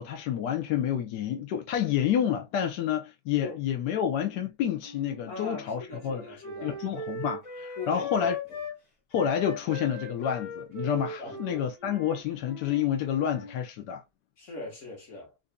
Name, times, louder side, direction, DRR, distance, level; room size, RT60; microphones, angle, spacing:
voice 1, 0.0-6.2 6.6-8.4 9.1-14.0, left 9 dB, 70° left, 1.0 m, -29 dB
Wind instrument woodwind instrument, 4.8-8.8 9.1-13.6, left 3 dB, 25° left, 0.8 m, -39 dB
voice 2, 5.3-6.8 7.8-8.3 11.2-11.6 14.4-15.3, left 3 dB, 40° left, 1.7 m, -40 dB
4.0 x 2.6 x 2.2 m
omnidirectional pair, 2.2 m